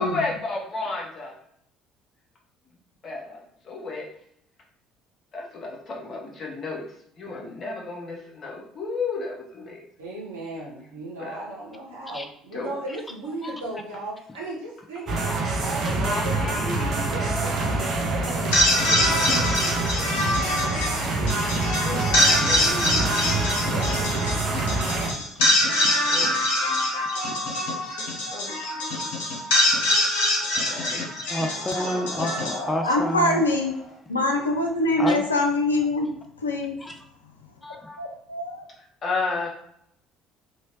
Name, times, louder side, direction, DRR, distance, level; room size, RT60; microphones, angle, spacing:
voice 1, 0.0-1.3 3.0-4.1 5.3-6.8 7.2-9.8 11.2-11.3 12.5-12.8 16.0-17.1 19.0-19.2 19.6-20.8 21.8-23.7 26.1-26.4 27.6-28.5 30.7-31.0 31.6-32.1 39.0-39.5, left 3 dB, 40° left, -1 dB, 0.9 m, -33 dB
voice 2, 10.0-16.6 17.1-22.2 23.7-25.2, right 1 dB, 75° right, -7 dB, 1.1 m, -37 dB
sound 1, 15.1-25.1, right 2 dB, 45° right, 0.7 m, -26 dB
sound 2, 18.3-33.6, left 1 dB, 65° left, 0.9 m, -24 dB
voice 3, 31.3-33.5 35.0-35.3 36.8-37.0 37.6-38.0, left 1 dB, 15° left, 5 dB, 0.5 m, -30 dB
voice 4, 32.8-33.8 34.1-36.8 38.0-38.7, left 2 dB, 80° left, 2 dB, 0.4 m, -24 dB
3.0 x 2.8 x 2.9 m, 0.71 s
figure-of-eight pair, 55°, 0 cm